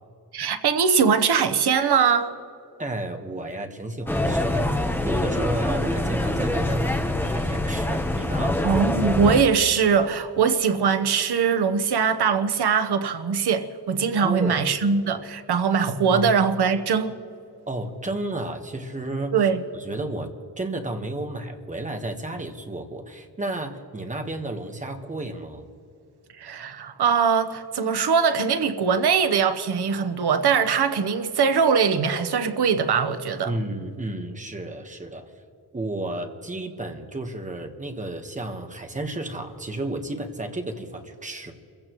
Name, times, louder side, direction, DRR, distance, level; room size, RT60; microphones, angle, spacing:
voice 1, 0.3-2.3 8.6-17.1 19.3-19.6 26.4-33.5, right 6 dB, 90° right, 1.0 m, -21 dB
voice 2, 2.8-8.6 14.2-14.7 16.0-16.3 17.7-19.5 19.7-20.3 20.6-25.7 33.4-35.3 35.7-41.5, right 1 dB, 20° right, 1.3 m, -32 dB
sound 1, 4.1-9.4, left 1 dB, 5° left, 0.9 m, -25 dB
29.0 x 16.0 x 3.1 m
wide cardioid pair, 175°, 38 cm